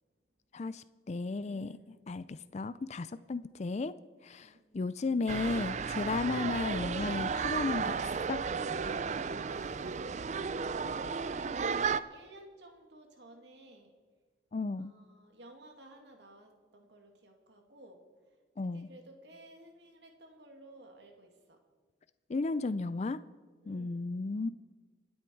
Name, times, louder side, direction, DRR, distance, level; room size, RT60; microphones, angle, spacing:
voice 1, 0.5-1.8 2.1-3.9 4.2-8.0 8.3-8.4 14.5-14.9 18.6-18.9 22.3-23.2 23.7-24.5, left 3 dB, 35° left, 14 dB, 0.4 m, -34 dB
voice 2, 1.4-2.5 4.4-4.6 9.5-10.0 10.3-14.0 14.8-18.0 18.6-21.6 23.6-24.1, right 1 dB, 60° right, 3 dB, 2.4 m, -56 dB
sound 1, 5.3-12.0, right 5 dB, 40° right, 0.4 m, -34 dB
27.5 x 9.5 x 4.6 m, 1.4 s
head